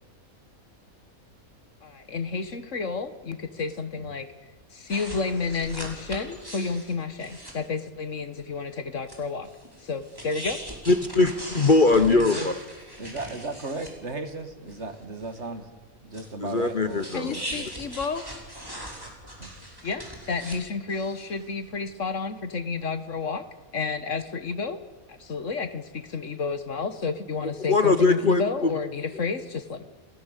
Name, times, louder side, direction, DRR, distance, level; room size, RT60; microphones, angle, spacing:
voice 1, 1.8-4.3 4.7-9.5 9.8-10.6 17.1-18.3 19.8-23.4 23.7-24.8 25.1-29.8, left 4 dB, 60° left, 11 dB, 1.7 m, -30 dB
sound 1, 4.9-7.5 9.0-9.2 9.4-13.9 14.3-14.4 14.6-15.6 16.1-20.6 20.9-21.7, equal, 15° right, 5.4 m, -40 dB
voice 2, 10.9-12.5 16.4-17.3 27.7-28.7, left 3 dB, 40° left, 10 dB, 1.1 m, -21 dB
voice 3, 12.0-12.5 13.0-15.7 16.0-17.7 19.4-19.5, right 3 dB, 50° right, 8 dB, 2.5 m, -36 dB
29.5 x 19.5 x 8.3 m, 1.3 s
omnidirectional pair, 1.5 m